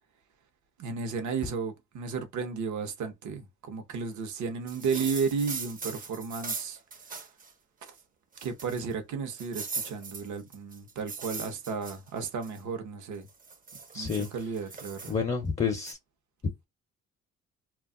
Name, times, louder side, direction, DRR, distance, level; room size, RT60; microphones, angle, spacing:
voice 1, 0.8-6.8 7.8-7.9 8.4-13.3 13.9-15.2, right 5 dB, 75° right, 0.8 m, -33 dB
sound 1, 4.7-7.5 7.9-8.0 8.3-8.9 9.4-12.6 13.2-15.1 15.9-16.0, right 4 dB, 30° right, 0.5 m, -39 dB
voice 2, 13.9-14.3 15.1-16.0, left 6 dB, 20° left, 0.5 m, -29 dB
2.3 x 2.0 x 3.6 m
cardioid pair, 90°, 30 cm